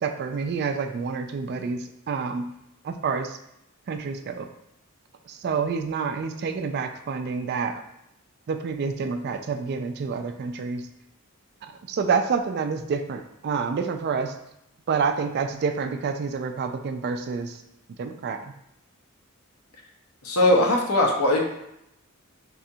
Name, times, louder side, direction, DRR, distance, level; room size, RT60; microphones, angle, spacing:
voice 1, 0.0-2.5 2.8-3.4 3.9-4.5 5.3-7.8 8.5-10.9 11.6-14.3 14.9-17.6 18.0-18.4, right 5 dB, 50° right, 7 dB, 0.3 m, -28 dB
voice 2, 20.2-21.4, left 1 dB, 85° left, 1 dB, 0.7 m, -20 dB
4.9 x 2.3 x 2.7 m, 0.81 s
head